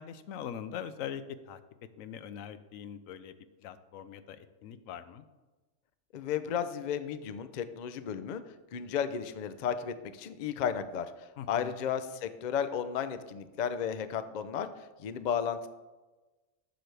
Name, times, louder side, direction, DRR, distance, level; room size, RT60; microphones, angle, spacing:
voice 1, 0.0-1.6 2.0-3.3 3.6-5.2 11.4-11.8, left 8 dB, 90° left, 12 dB, 1.0 m, -42 dB
voice 2, 6.1-8.4 8.7-15.7, left 8 dB, 55° left, 12 dB, 0.5 m, -34 dB
12.0 x 6.8 x 3.3 m, 1.2 s
omnidirectional pair, 1.3 m